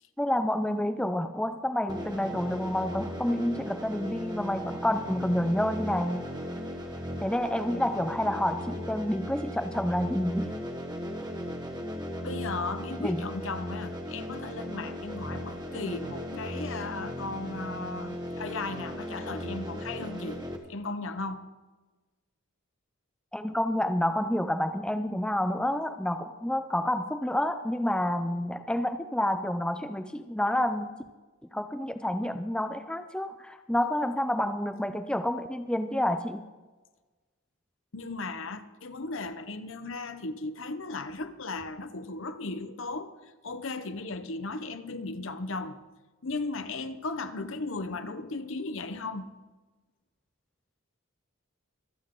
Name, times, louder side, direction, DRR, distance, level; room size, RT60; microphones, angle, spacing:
voice 1, 0.2-6.2 7.2-10.5 13.0-13.2 23.3-31.0 31.5-36.4, left 1 dB, 5° left, 0.4 m, -29 dB
sound 1, 1.9-20.6, equal, 20° right, 1.3 m, -37 dB
voice 2, 12.2-21.5 37.9-45.8 46.2-49.3, left 3 dB, 60° left, 0.9 m, -36 dB
25.5 x 8.9 x 3.8 m
head